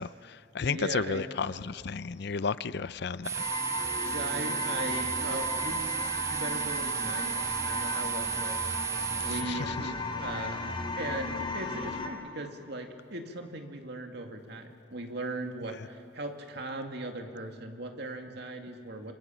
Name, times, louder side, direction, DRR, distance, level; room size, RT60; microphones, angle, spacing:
voice 1, 0.0-3.4 9.4-9.7, left 5 dB, 60° left, 16 dB, 0.6 m, -33 dB
voice 2, 0.6-1.3 4.1-19.1, right 2 dB, 65° right, 4 dB, 2.3 m, -39 dB
sound 1, 3.2-9.4, right 10 dB, 15° right, 1.1 m, -34 dB
sound 2, 3.3-12.1, left 3 dB, 30° left, 2.7 m, -35 dB
27.5 x 24.5 x 7.5 m, 2.6 s
head